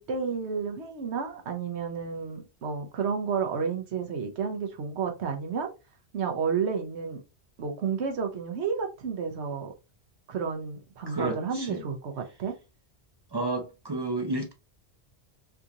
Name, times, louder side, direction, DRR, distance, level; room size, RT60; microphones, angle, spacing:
voice 1, 0.0-5.7 6.1-7.2 7.6-9.7 10.3-12.5, right 6 dB, 85° right, 1.1 m, -31 dB
voice 2, 11.1-11.8 13.3-14.5, right 2 dB, 35° right, 0.4 m, -31 dB
3.5 x 2.5 x 2.8 m
omnidirectional pair, 1.1 m